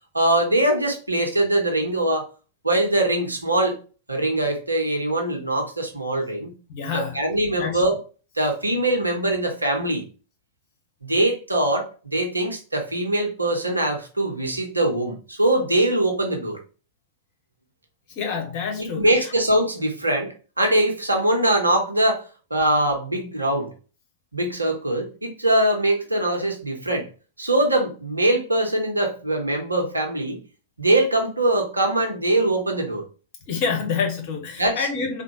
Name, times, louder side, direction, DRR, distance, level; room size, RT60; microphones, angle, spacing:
voice 1, 0.1-2.2 2.6-3.8 4.1-6.5 6.9-7.9 8.4-10.0 11.0-16.6 18.8-22.2 22.5-23.7 24.3-27.1 27.4-30.4 30.8-33.0 34.6-34.9, right 1 dB, 85° right, 2 dB, 0.8 m, -22 dB
voice 2, 6.7-7.3 7.6-7.8 18.2-19.1 33.5-35.2, left 5 dB, 45° left, 3 dB, 1.1 m, -27 dB
3.5 x 2.1 x 2.9 m, 0.35 s
figure-of-eight pair, 90°, 0 cm